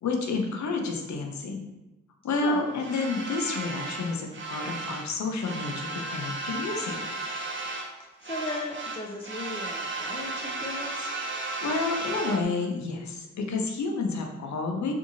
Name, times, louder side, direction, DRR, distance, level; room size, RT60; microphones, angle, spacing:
voice 1, 0.0-1.6 2.2-7.0 11.6-14.9, left 3 dB, 75° left, 2 dB, 0.6 m, -30 dB
sound 1, 2.8-5.1 5.4-8.0 8.2-12.4, right 2 dB, 40° right, 0.6 m, -34 dB
voice 2, 8.2-11.1, left 2 dB, 20° left, -1 dB, 0.4 m, -36 dB
2.7 x 2.6 x 2.6 m, 1.0 s
cardioid pair, 45°, 29 cm